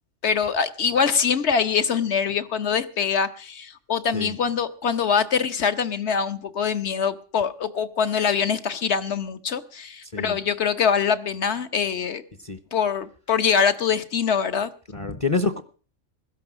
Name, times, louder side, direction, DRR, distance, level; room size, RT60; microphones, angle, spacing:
voice 1, 0.2-12.2 12.7-14.7, left 6 dB, 60° left, 1.3 m, -24 dB
voice 2, 14.9-15.6, left 3 dB, 30° left, 0.8 m, -26 dB
16.5 x 12.5 x 6.1 m
omnidirectional pair, 1.3 m